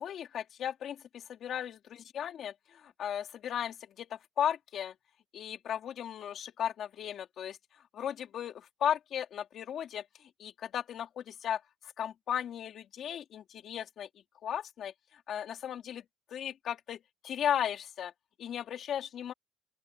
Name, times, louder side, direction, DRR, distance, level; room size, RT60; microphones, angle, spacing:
voice 1, 0.0-4.9 5.3-7.6 7.9-14.1 14.4-18.1 18.4-19.3, left 9 dB, 55° left, 2.6 m, -36 dB
open air
cardioid pair, 125°, 0 cm